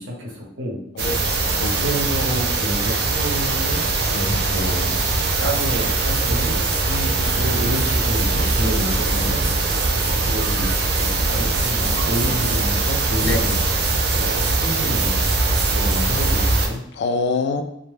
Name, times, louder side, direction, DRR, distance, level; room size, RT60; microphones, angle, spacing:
voice 1, 0.0-0.8 1.8-3.8 4.4-4.9 5.4-6.6 7.3-10.7 11.0-13.5 14.1-15.2 15.7-16.8, equal, 85° right, -2 dB, 0.8 m, -29 dB
voice 2, 1.0-1.7 4.1-4.4 6.9-7.5 13.2-13.4 16.9-17.6, left 3 dB, 60° left, 6 dB, 0.3 m, -26 dB
sound 1, 1.0-16.7, right 3 dB, 55° right, 0.4 m, -21 dB
2.1 x 2.0 x 3.1 m, 0.74 s
head